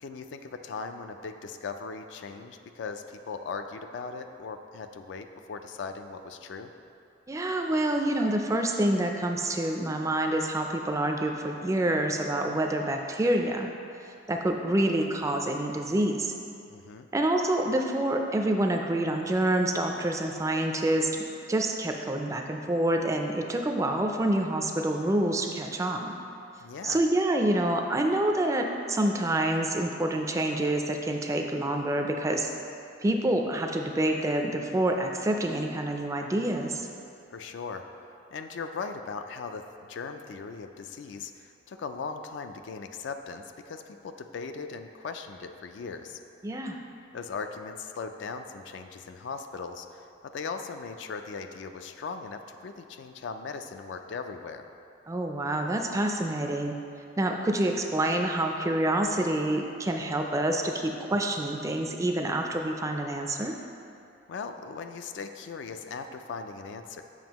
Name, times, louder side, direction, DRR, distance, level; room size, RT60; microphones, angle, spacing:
voice 1, 0.0-6.7 16.7-17.1 26.6-27.0 37.3-37.9 38.3-46.2 47.1-54.7 64.3-67.0, left 5 dB, 65° left, 7 dB, 0.3 m, -39 dB
voice 2, 7.3-13.7 14.3-16.3 17.1-21.2 21.5-26.1 26.8-32.5 33.0-36.9 46.4-46.8 55.1-56.8 57.2-63.5, right 1 dB, 15° right, 3 dB, 0.3 m, -27 dB
7.3 x 5.6 x 2.9 m, 2.6 s
head